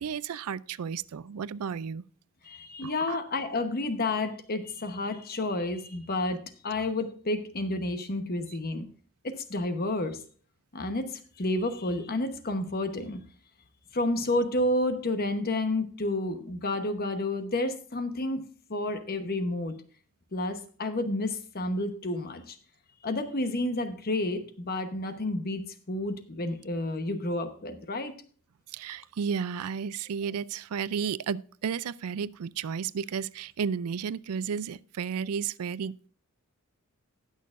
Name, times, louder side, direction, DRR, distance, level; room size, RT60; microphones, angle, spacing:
voice 1, 0.0-2.0 2.8-3.2 28.7-36.1, right 6 dB, 85° right, 0.4 m, -33 dB
voice 2, 2.4-8.9 9.2-10.2 10.7-13.2 13.9-19.7 20.3-22.6 23.0-28.2, left 2 dB, 45° left, 1.0 m, -30 dB
19.5 x 6.5 x 2.5 m
head